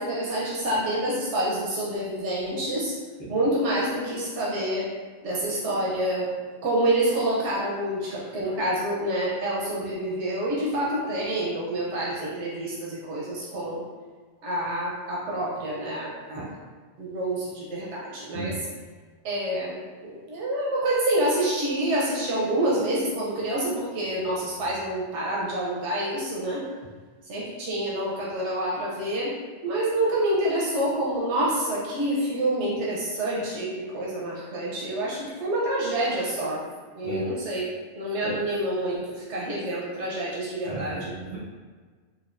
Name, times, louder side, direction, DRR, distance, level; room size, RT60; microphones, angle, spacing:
voice 1, 0.0-2.9 3.3-4.9 5.2-6.3 6.6-13.8 14.4-16.5 17.0-18.6 19.2-26.6 27.3-29.3 29.6-36.6 36.9-37.7 38.0-41.1, right 1 dB, 90° right, -5 dB, 1.1 m, -27 dB
voice 2, 40.7-41.4, right 2 dB, 45° left, -11 dB, 0.9 m, -34 dB
4.3 x 2.5 x 2.5 m, 1.5 s
omnidirectional pair, 1.1 m